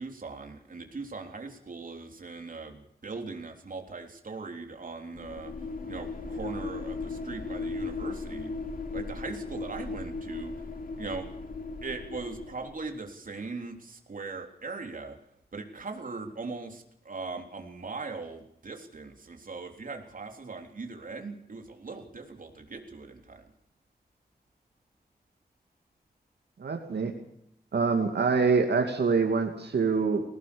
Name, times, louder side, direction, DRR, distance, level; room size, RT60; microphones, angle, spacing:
voice 1, 0.0-5.5 5.9-8.5 8.9-10.5 11.0-11.3 11.8-15.2 15.5-23.4, right 3 dB, 55° right, 3 dB, 3.5 m, -40 dB
sound 1, 5.1-12.9, left 3 dB, 60° left, 2.8 m, -37 dB
voice 2, 26.6-27.1 27.7-30.2, right 4 dB, 85° right, 3 dB, 2.6 m, -25 dB
20.5 x 18.0 x 7.1 m, 0.75 s
wide cardioid pair, 120°, 17 cm